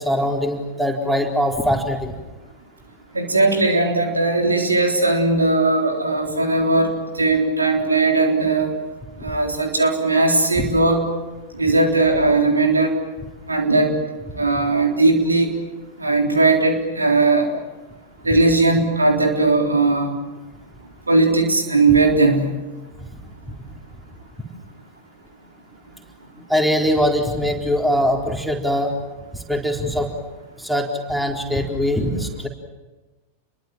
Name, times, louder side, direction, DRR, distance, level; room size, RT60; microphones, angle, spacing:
voice 1, 0.0-2.1 10.5-10.7 23.1-23.2 23.5-23.6 26.5-28.9 29.3-30.1 30.6-32.5, equal, ahead, 2 dB, 4.2 m, -22 dB
voice 2, 3.1-8.7 9.2-11.0 11.5-12.9 13.5-14.0 14.3-15.5 16.0-17.5 18.2-20.1 21.1-22.5, right 3 dB, 80° right, 3 dB, 3.7 m, -18 dB
29.5 x 23.0 x 7.5 m, 1.2 s
figure-of-eight pair, 90°, 0 cm